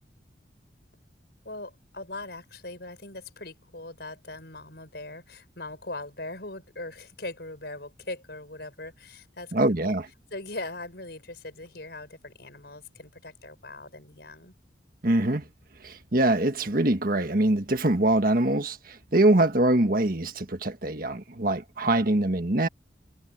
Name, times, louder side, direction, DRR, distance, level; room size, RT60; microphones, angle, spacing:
voice 1, 1.4-9.5 9.8-9.9 10.3-14.5, left 2 dB, 55° left, 7.0 m, -40 dB
voice 2, 9.5-10.0 15.0-15.4 15.8-22.7, right 1 dB, 50° right, 1.6 m, -23 dB
head